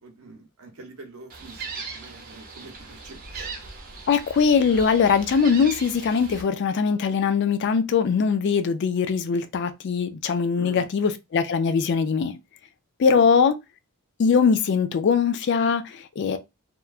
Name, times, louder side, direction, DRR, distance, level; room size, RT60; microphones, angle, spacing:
voice 1, 0.0-3.5 10.6-10.9 13.1-13.3, right 2 dB, 85° right, 0.8 m, -44 dB
Gull seagull, 1.3-6.4, right 4 dB, 40° right, 0.6 m, -39 dB
voice 2, 4.1-12.4 13.0-13.5 14.2-16.4, left 6 dB, 55° left, 0.3 m, -21 dB
2.9 x 2.2 x 2.3 m
head